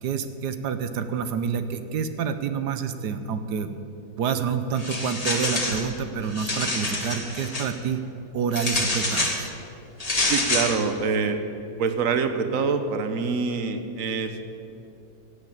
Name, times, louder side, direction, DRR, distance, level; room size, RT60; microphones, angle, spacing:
voice 1, 0.0-3.7 4.2-8.0 8.3-9.5, right 6 dB, 70° right, 10 dB, 1.3 m, -28 dB
sound 1, 4.8-5.9 6.2-7.7 8.5-9.4 10.0-10.7, left 2 dB, 20° left, 1.8 m, -26 dB
voice 2, 10.3-11.4 11.8-14.5, right 5 dB, 55° right, 8 dB, 1.3 m, -25 dB
15.5 x 8.3 x 8.7 m, 2.8 s
omnidirectional pair, 1.9 m